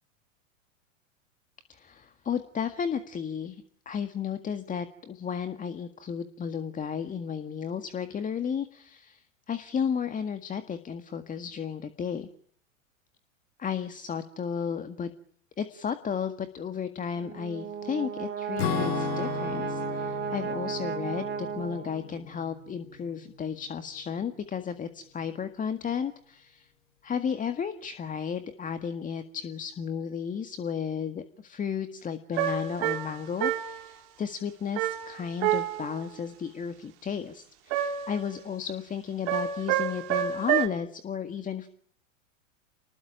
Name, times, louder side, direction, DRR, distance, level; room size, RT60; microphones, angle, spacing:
voice 1, 1.7-12.3 13.6-15.1 15.6-26.7 27.0-41.7, left 7 dB, 20° left, 10 dB, 1.8 m, -33 dB
Brass instrument, 17.2-22.2, right 8 dB, 25° right, 2.2 m, -34 dB
Acoustic guitar / Strum, 18.6-23.4, left 8 dB, 55° left, 2.9 m, -35 dB
sound 1, 32.4-33.9 34.8-36.0 37.7-38.2 39.3-40.7, right 11 dB, 50° right, 2.7 m, -28 dB
29.0 x 20.5 x 9.1 m, 0.64 s
hypercardioid pair, 95°, 38 cm